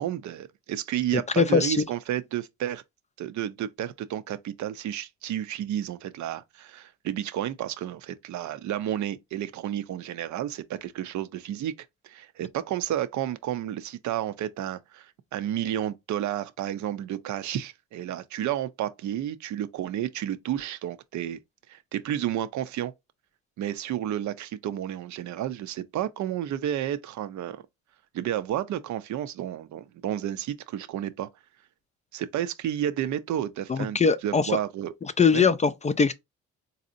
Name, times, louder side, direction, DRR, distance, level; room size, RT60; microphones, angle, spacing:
voice 1, 0.0-2.8 3.2-11.7 12.0-21.4 21.7-22.9 23.6-27.6 28.1-31.3 32.1-34.9 35.3-35.5, right 11 dB, 70° right, 0.6 m, -31 dB
voice 2, 1.4-1.8 33.7-34.4 35.2-36.1, left 5 dB, 25° left, 0.4 m, -21 dB
4.0 x 2.7 x 2.6 m
cardioid pair, 90°, 30 cm